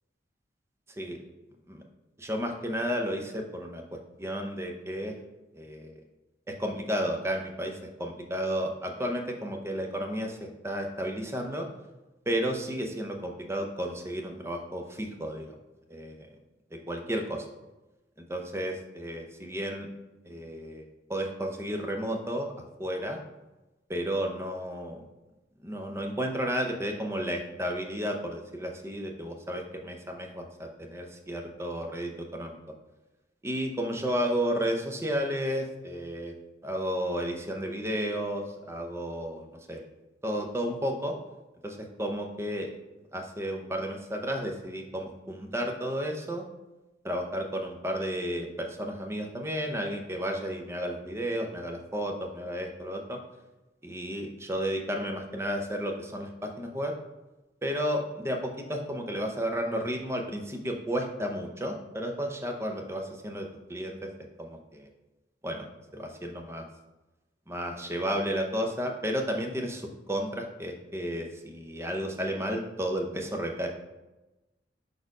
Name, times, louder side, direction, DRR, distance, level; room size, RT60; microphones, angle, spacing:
voice 1, 2.2-3.8 4.2-5.2 5.5-6.0 6.5-11.7 12.3-15.6 15.9-16.3 16.9-17.5 18.2-19.9 20.2-22.5 22.8-23.2 23.9-25.0 25.6-32.6 33.4-36.3 36.6-39.8 40.2-41.1 41.6-42.7 43.1-46.4 47.0-53.2 53.8-56.9 57.6-64.1 64.4-64.9 65.4-65.7 65.9-66.6 67.5-73.7, equal, 15° right, 2 dB, 0.6 m, -32 dB
5.0 x 4.5 x 4.7 m, 1.1 s
head